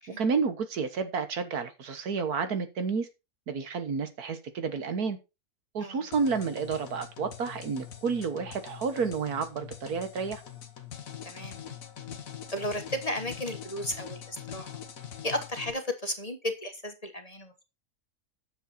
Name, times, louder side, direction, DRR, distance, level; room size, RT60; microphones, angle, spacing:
voice 1, 0.2-3.1 3.5-5.2 5.7-10.4, right 5 dB, 80° right, 9 dB, 1.8 m, -30 dB
sound 1, 6.1-15.7, left 9 dB, 65° left, 1.6 m, -43 dB
voice 2, 11.2-11.6 12.5-14.8 15.2-17.6, left 1 dB, 25° left, 6 dB, 1.4 m, -34 dB
10.0 x 7.3 x 4.2 m, 0.26 s
omnidirectional pair, 1.6 m